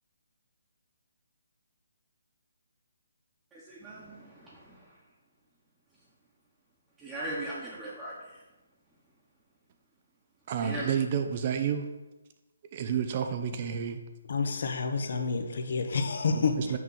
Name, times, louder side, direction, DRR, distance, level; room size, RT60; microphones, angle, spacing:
voice 1, 3.5-4.9 7.0-8.4 10.6-10.9, right 1 dB, 10° right, 1.1 m, -39 dB
voice 2, 10.5-11.9 12.7-14.0 16.4-16.8, right 8 dB, 35° right, 0.5 m, -30 dB
voice 3, 14.3-16.8, left 4 dB, 60° left, 0.8 m, -29 dB
6.1 x 3.6 x 5.8 m
hypercardioid pair, 155°, 0 cm